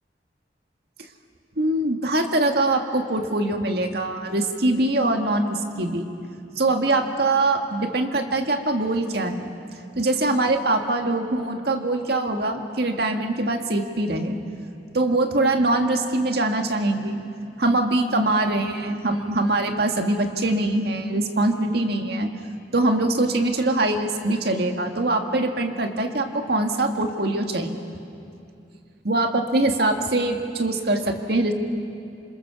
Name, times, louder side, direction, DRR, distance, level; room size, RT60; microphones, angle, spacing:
voice 1, 1.6-6.1 6.6-9.5 10.0-14.4 14.9-17.2 17.6-22.3 22.7-27.9 29.0-31.5, right 2 dB, 65° right, 4 dB, 1.9 m, -23 dB
27.5 x 27.5 x 7.0 m, 2.6 s
head